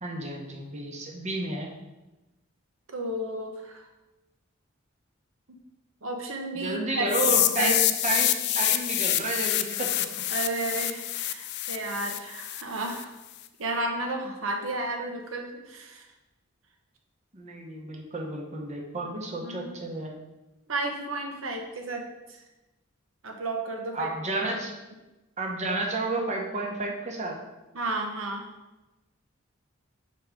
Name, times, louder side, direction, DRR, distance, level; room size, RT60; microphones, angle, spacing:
voice 1, 0.0-1.7 6.5-7.8 8.0-10.1 17.3-20.1 23.9-24.7 25.4-27.4, right 2 dB, 35° right, 0 dB, 1.0 m, -31 dB
voice 2, 2.9-3.8 5.5-5.6 6.0-7.8 10.3-13.1 13.6-16.0 19.0-19.1 19.4-19.7 20.7-22.4 23.2-24.1 27.7-28.5, right 2 dB, 80° right, 2 dB, 1.0 m, -32 dB
sound 1, 7.1-13.0, left 13 dB, 55° left, 0.3 m, -27 dB
5.8 x 4.7 x 3.7 m, 1.0 s
head